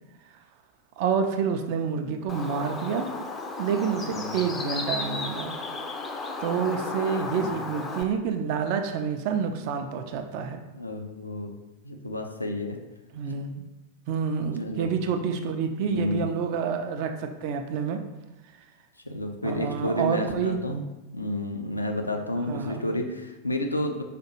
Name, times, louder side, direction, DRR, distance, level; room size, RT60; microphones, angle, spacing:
voice 1, 1.0-3.1 3.6-5.5 6.4-10.6 13.1-13.6 14.1-18.0 19.4-20.6 22.5-22.9, right 6 dB, 45° right, 6 dB, 0.4 m, -28 dB
Bird, 2.3-8.0, left 3 dB, 20° left, 0.4 m, -34 dB
voice 2, 10.7-11.5 11.8-12.8 14.4-14.9 15.8-16.3 19.1-20.8 21.1-24.0, left 1 dB, 85° left, 4 dB, 0.4 m, -31 dB
4.9 x 2.3 x 2.9 m, 1.0 s
figure-of-eight pair, 90°, 0 cm